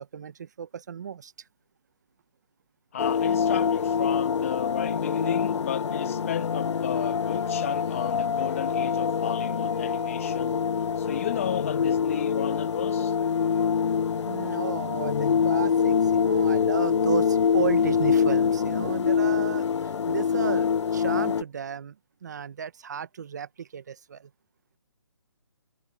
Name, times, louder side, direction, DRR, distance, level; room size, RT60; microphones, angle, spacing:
voice 1, 0.0-1.5 14.2-22.0 22.2-24.3, right 7 dB, 40° right, 1.1 m, -34 dB
voice 2, 2.9-10.6 11.0-13.1, left 10 dB, 30° left, 1.6 m, -34 dB
sound 1, 3.0-21.4, left 6 dB, 80° left, 0.4 m, -25 dB
sound 2, 6.9-16.3, right 37 dB, 15° right, 4.8 m, -54 dB
hypercardioid pair, 165°, 15 cm